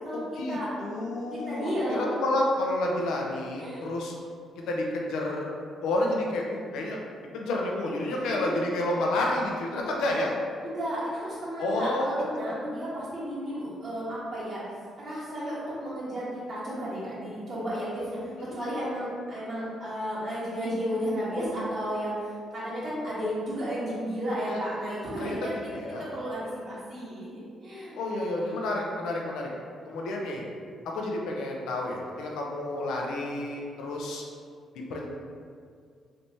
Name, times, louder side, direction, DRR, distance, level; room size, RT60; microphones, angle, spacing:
voice 1, 0.1-4.1 4.7-5.5 5.8-6.4 6.7-7.0 7.3-10.3 11.6-12.1 18.3-18.5 24.5-24.6 25.2-25.4 25.7-26.1 27.9-29.5 29.8-30.5 30.9-34.2 34.7-35.1, left 1 dB, 85° left, -1 dB, 0.5 m, -30 dB
voice 2, 1.3-2.1 3.6-3.9 8.2-8.6 10.6-14.6 15.0-25.5 26.0-27.3 27.6-28.6, equal, 50° right, -10 dB, 1.3 m, -33 dB
3.2 x 3.0 x 2.7 m, 2.2 s
cardioid pair, 90°, 0 cm